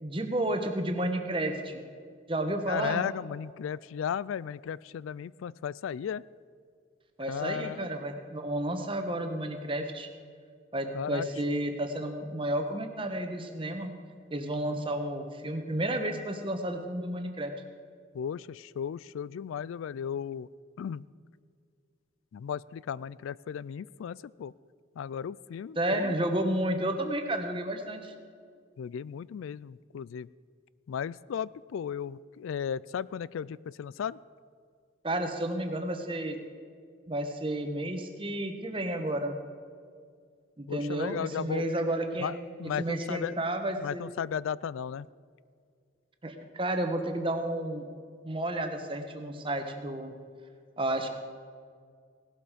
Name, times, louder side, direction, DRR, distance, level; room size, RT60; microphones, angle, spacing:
voice 1, 0.0-1.8 2.3-3.0 7.2-10.1 10.7-13.9 14.3-17.5 25.7-28.1 35.0-36.4 37.1-39.4 40.6-42.3 42.8-44.0 46.2-47.8 48.2-50.1 50.8-51.1, right 1 dB, 25° right, 5 dB, 1.2 m, -31 dB
voice 2, 2.7-6.2 7.3-7.9 10.9-11.3 18.1-20.5 20.8-21.0 22.3-24.5 25.0-26.1 28.8-30.3 30.9-34.2 40.7-41.6 42.2-42.3 42.6-43.3 43.8-45.1, left 8 dB, 80° left, 21 dB, 0.3 m, -35 dB
17.5 x 12.0 x 5.1 m, 2.1 s
head